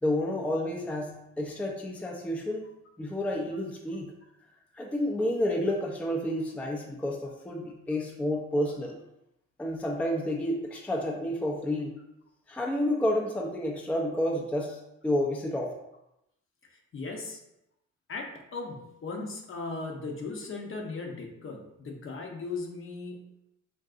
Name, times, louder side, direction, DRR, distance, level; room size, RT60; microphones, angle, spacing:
voice 1, 0.0-2.7 3.0-4.1 4.7-9.0 9.6-11.9 12.5-14.8 15.0-15.7, left 1 dB, 5° left, 0 dB, 0.4 m, -30 dB
voice 2, 16.7-17.4 18.1-23.3, left 3 dB, 45° left, 2 dB, 0.7 m, -38 dB
3.6 x 2.6 x 2.4 m, 0.85 s
cardioid pair, 90°, 30 cm